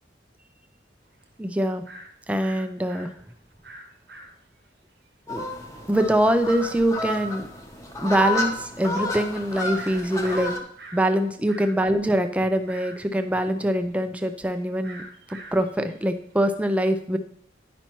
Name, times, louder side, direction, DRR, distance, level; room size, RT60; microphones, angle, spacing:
sound 1, 1.1-1.2 1.9-2.1 2.4-4.7 5.1-5.2 5.4-5.7 6.4-6.5 7.1-7.2 7.6-7.8 8.2-11.1 11.4-16.4, right 2 dB, 60° right, 0.9 m, -44 dB
voice 1, 1.4-1.8 2.3-3.1 5.3-5.4 5.9-7.5 8.0-10.5 10.9-15.0 15.3-17.2, right 1 dB, 5° right, 7 dB, 0.4 m, -24 dB
sound 2, 5.3-10.6, left 1 dB, 15° left, 0.9 m, -31 dB
10.0 x 5.6 x 3.0 m, 0.64 s
head